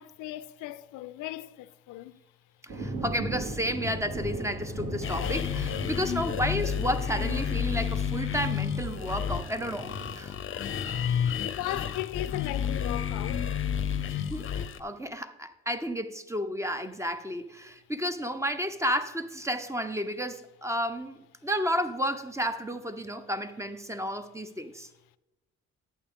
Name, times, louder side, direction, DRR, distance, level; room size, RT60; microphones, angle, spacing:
voice 1, 0.0-2.2 5.9-6.1 10.5-10.7 11.4-13.6 14.1-14.3, left 15 dB, 90° left, 0.5 m, -38 dB
voice 2, 2.6-10.4 14.1-24.9, equal, 10° right, 0.7 m, -32 dB
sound 1, 2.7-10.2, right 1 dB, 50° right, 3.8 m, -38 dB
sound 2, 5.0-14.8, left 8 dB, 40° left, 0.6 m, -31 dB
11.5 x 8.3 x 3.6 m
cardioid pair, 90°, 30 cm